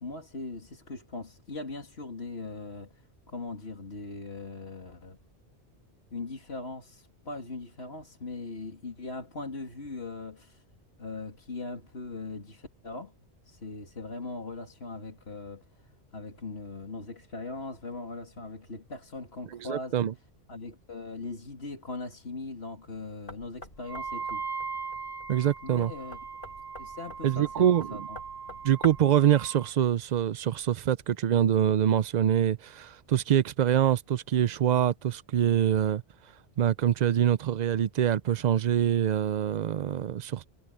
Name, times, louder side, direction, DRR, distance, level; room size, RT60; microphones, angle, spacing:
voice 1, 0.0-5.2 6.1-10.6 11.0-13.1 13.4-20.0 20.5-24.4 25.6-26.2 26.8-28.2 28.5-28.6, left 3 dB, 60° left, 2.9 m, -40 dB
voice 2, 19.6-20.1 25.3-25.9 27.2-28.1 28.6-36.0 36.6-40.5, right 10 dB, 55° right, 0.5 m, -25 dB
Knock, 23.3-29.2, left 1 dB, 45° left, 6.2 m, -46 dB
Wind instrument woodwind instrument, 23.8-29.7, right 5 dB, 20° right, 1.0 m, -39 dB
omnidirectional pair, 1.2 m